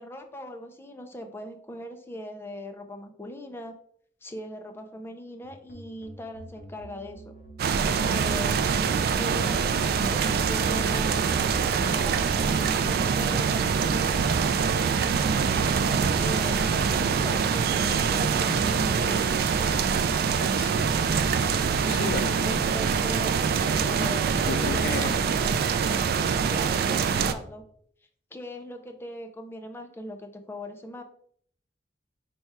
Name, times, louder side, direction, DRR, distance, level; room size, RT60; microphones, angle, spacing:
voice 1, 0.0-3.7 4.2-7.3 7.8-8.8 9.2-14.2 15.0-15.5 16.2-19.4 22.4-23.4 23.8-25.1 26.5-27.6 28.3-31.0, equal, 15° left, 0.4 m, -40 dB
sound 1, 5.4-14.3, right 1 dB, 50° left, 1.0 m, -46 dB
sound 2, 7.6-27.3, right 6 dB, 55° right, 0.3 m, -24 dB
sound 3, 11.3-21.9, equal, 85° right, 1.0 m, -42 dB
voice 2, 20.6-20.9 21.4-22.4 24.5-25.3, left 5 dB, 85° left, 0.4 m, -34 dB
4.2 x 2.3 x 4.6 m
head